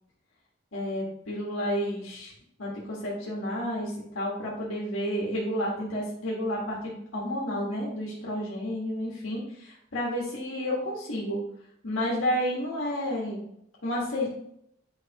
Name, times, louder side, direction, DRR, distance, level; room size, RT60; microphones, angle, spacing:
voice 1, 0.7-2.3 2.6-11.4 11.8-13.5 13.8-14.4, equal, 80° left, -5 dB, 1.6 m, -31 dB
9.5 x 4.8 x 2.9 m, 0.75 s
head